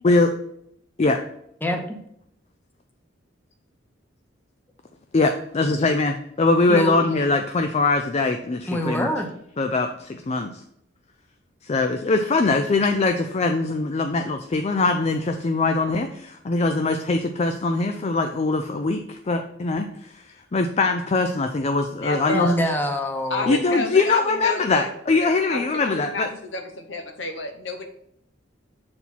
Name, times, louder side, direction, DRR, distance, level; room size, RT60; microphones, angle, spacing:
voice 1, 1.6-2.0 6.7-7.0 8.7-9.3 22.3-23.6, equal, 10° left, 4 dB, 0.8 m, -25 dB
voice 2, 5.1-9.1 9.6-10.6 11.6-22.5 23.5-26.3, left 3 dB, 35° left, 6 dB, 0.4 m, -22 dB
voice 3, 21.8-22.6 23.3-24.9 25.2-27.9, left 2 dB, 70° left, 5 dB, 1.1 m, -30 dB
7.1 x 4.4 x 4.2 m, 0.74 s
head